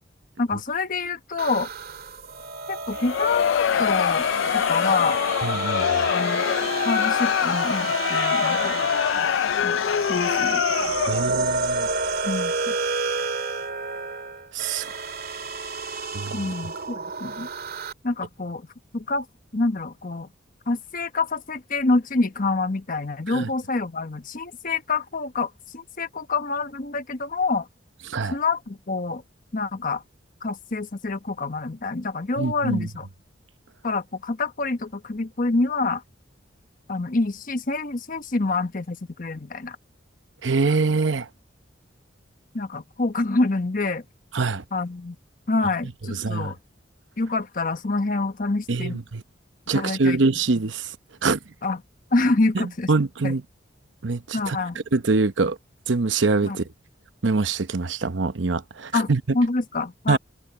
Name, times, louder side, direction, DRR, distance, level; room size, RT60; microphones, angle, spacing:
voice 1, 0.4-1.7 2.7-4.3 4.5-5.2 6.1-6.4 6.8-8.8 9.6-9.8 10.1-10.6 12.2-12.7 16.3-17.5 18.0-18.7 18.9-19.3 19.5-20.3 20.7-27.7 28.3-29.2 29.5-30.0 30.4-33.1 33.8-36.0 36.9-39.8 42.5-44.0 44.7-45.2 45.5-46.6 47.2-49.0 49.7-50.2 51.6-51.8 52.1-52.9 53.2-53.3 54.3-54.8 56.4-56.6 58.9-60.2, left 3 dB, 45° left, 1.1 m, -26 dB
sound 1, 1.4-17.9, right 4 dB, 55° right, 2.1 m, -30 dB
Crowd, 2.9-11.4, left 8 dB, 70° left, 0.3 m, -24 dB
voice 2, 5.4-6.0 11.1-11.9 14.5-14.9 16.1-16.5 23.3-23.5 28.1-28.3 32.4-32.9 40.4-41.3 44.3-44.6 46.2-46.5 48.7-49.2 49.7-50.9 51.2-51.4 52.9-53.4 54.0-54.6 54.9-55.6 55.9-56.6 57.2-59.2 60.1-60.2, right 3 dB, 75° right, 0.8 m, -24 dB
head